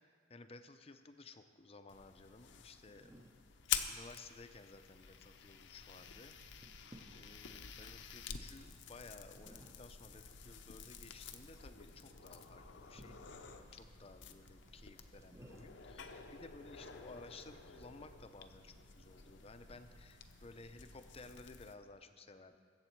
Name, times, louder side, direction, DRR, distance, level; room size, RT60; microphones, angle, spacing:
voice 1, 0.3-3.1 3.9-6.6 7.1-22.6, left 3 dB, 30° left, 9 dB, 0.6 m, -56 dB
sound 1, 1.9-21.8, left 8 dB, 65° left, 0.7 m, -48 dB
sound 2, 2.1-17.9, equal, 15° right, 0.8 m, -65 dB
sound 3, 5.9-21.4, right 1 dB, 70° right, 0.9 m, -62 dB
21.5 x 7.8 x 4.6 m, 2.1 s
head